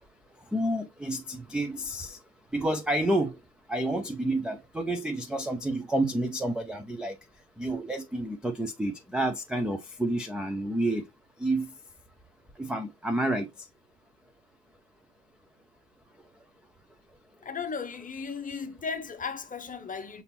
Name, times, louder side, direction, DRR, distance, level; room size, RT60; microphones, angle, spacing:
voice 1, 0.5-2.2 2.5-3.4 3.7-7.2 7.6-11.0 11.4-11.7 12.6-13.5, right 1 dB, ahead, 0.5 m, -29 dB
voice 2, 17.4-20.2, left 5 dB, 20° left, 0.8 m, -36 dB
6.6 x 2.8 x 2.7 m
figure-of-eight pair, 70°, 44 cm